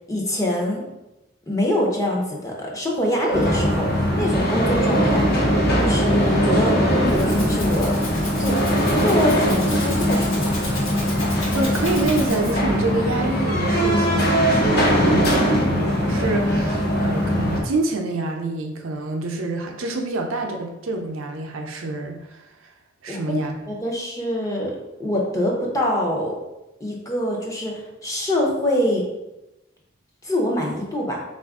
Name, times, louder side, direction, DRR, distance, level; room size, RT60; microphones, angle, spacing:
voice 1, 0.1-0.8 1.5-5.2 5.7-7.9 8.4-8.6 8.8-10.5 23.1-23.4 23.7-24.7 25.0-26.3 26.8-29.0 30.2-31.2, left 1 dB, 15° left, -2 dB, 0.6 m, -24 dB
sound 1, 3.3-17.6, equal, 50° left, 0.8 m, -20 dB
Rattle (instrument), 6.8-12.8, left 2 dB, 75° left, 1.1 m, -35 dB
voice 2, 11.5-22.7 23.0-23.6, right 2 dB, 75° right, 3 dB, 0.5 m, -27 dB
4.0 x 2.4 x 3.5 m, 0.97 s
head